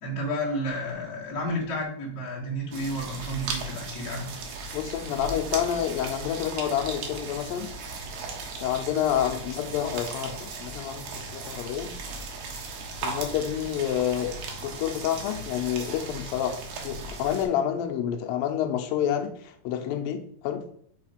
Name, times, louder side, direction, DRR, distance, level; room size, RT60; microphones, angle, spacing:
voice 1, 0.0-4.3, equal, 35° left, -5 dB, 1.6 m, -31 dB
sound 1, 2.7-17.5, right 3 dB, 70° right, 2.4 m, -37 dB
voice 2, 4.7-7.7 8.6-11.9 13.0-14.3 14.6-20.6, left 10 dB, 80° left, 5 dB, 2.3 m, -28 dB
5.6 x 3.7 x 5.0 m, 0.62 s
omnidirectional pair, 4.3 m